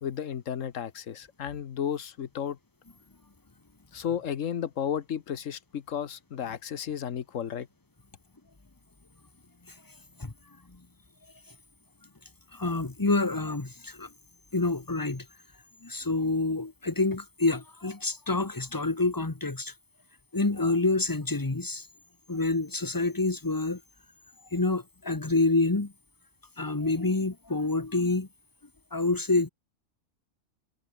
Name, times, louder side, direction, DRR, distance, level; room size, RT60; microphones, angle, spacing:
voice 1, 0.0-2.6 3.9-7.7, left 8 dB, 75° left, 1.4 m, -33 dB
voice 2, 12.5-14.1 14.5-15.2 15.8-19.7 20.3-21.9 22.3-23.8 24.5-25.9 26.6-28.3 28.9-29.5, left 3 dB, 15° left, 1.2 m, -27 dB
omnidirectional pair, 1.4 m